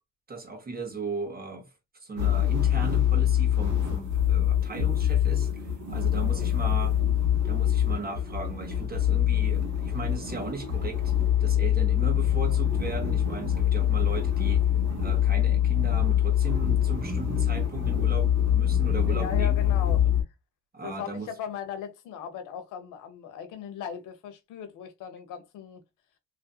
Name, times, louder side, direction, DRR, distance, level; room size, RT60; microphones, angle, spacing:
voice 1, 0.3-1.7 2.0-7.0 7.4-11.0 11.4-14.7 15.0-20.1 20.7-21.3, right 3 dB, 30° right, 1.5 m, -37 dB
sound 1, 2.2-20.2, left 10 dB, 70° right, 1.3 m, -24 dB
voice 2, 6.2-6.5 19.1-20.0 20.8-25.8, left 8 dB, 90° left, 0.9 m, -38 dB
3.1 x 2.7 x 2.4 m
cardioid pair, 90°, 30 cm